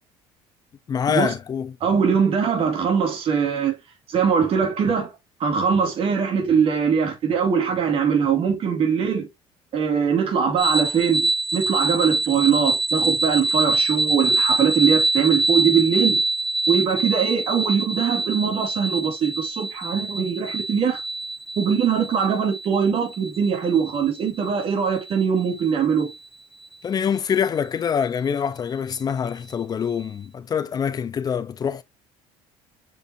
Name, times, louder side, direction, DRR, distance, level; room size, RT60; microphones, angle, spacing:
voice 1, 0.9-1.7 26.8-31.8, left 7 dB, 35° left, 0.9 m, -25 dB
voice 2, 1.8-3.8 4.1-5.1 5.4-9.3 9.7-11.3 11.5-16.2 16.7-21.0 21.6-26.1, right 7 dB, 55° right, 2.6 m, -21 dB
sound 1, 10.6-26.1, right 2 dB, ahead, 1.7 m, -25 dB
6.8 x 5.1 x 2.8 m
supercardioid pair, 100°, 12 cm